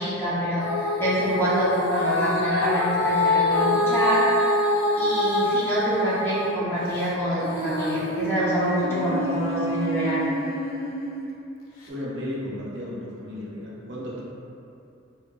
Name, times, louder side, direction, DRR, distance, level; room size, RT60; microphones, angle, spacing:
voice 1, 0.0-4.4 5.0-10.3, equal, 10° left, -10 dB, 0.4 m, -26 dB
Female singing, 0.6-6.5 6.9-11.2 11.8-11.9, left 1 dB, 85° left, 0.4 m, -25 dB
voice 2, 11.9-14.2, left 1 dB, 60° right, -5 dB, 0.5 m, -34 dB
2.7 x 2.1 x 2.2 m, 2.6 s
head